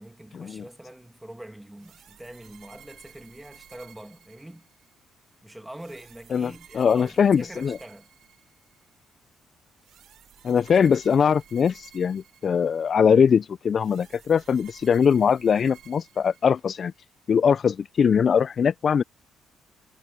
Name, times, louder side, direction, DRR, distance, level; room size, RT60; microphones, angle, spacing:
voice 1, 0.0-4.7 5.4-8.1, right 1 dB, 5° right, 2.4 m, -44 dB
sound 1, 1.8-4.9 5.7-8.8 9.8-13.0 13.8-16.9, right 10 dB, 70° right, 3.6 m, -54 dB
voice 2, 6.3-7.8 10.4-16.9 17.3-19.0, left 7 dB, 50° left, 0.3 m, -21 dB
cardioid pair, 90°, 0 cm